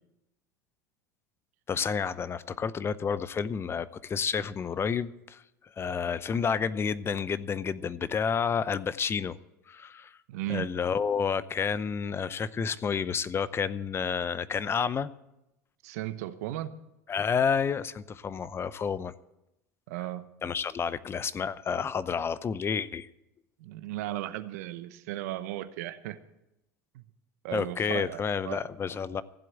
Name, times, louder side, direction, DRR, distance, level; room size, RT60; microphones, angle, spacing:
voice 1, 1.7-5.4 5.8-9.4 9.7-10.2 10.5-15.1 17.1-19.1 20.4-23.1 27.5-29.2, left 6 dB, 30° left, 16 dB, 0.7 m, -30 dB
voice 2, 10.3-10.7 15.8-16.7 19.9-20.3 23.6-26.2 26.9-27.0 27.4-28.6, right 14 dB, 75° right, 12 dB, 0.9 m, -36 dB
15.0 x 7.7 x 9.0 m, 0.90 s
hypercardioid pair, 90°, 9 cm